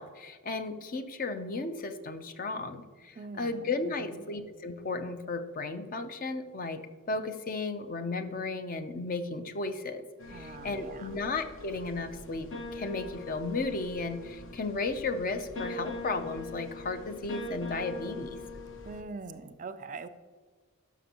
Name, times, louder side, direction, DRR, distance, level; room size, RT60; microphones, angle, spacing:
voice 1, 0.0-6.8 7.1-10.0 10.3-18.4, left 3 dB, 40° left, 9 dB, 0.6 m, -34 dB
voice 2, 3.2-4.3 10.3-11.2 18.8-20.1, right 4 dB, 35° right, 12 dB, 0.4 m, -43 dB
sound 1, 10.2-19.0, left 2 dB, 60° left, 0.9 m, -42 dB
12.5 x 6.0 x 2.9 m, 1.5 s
head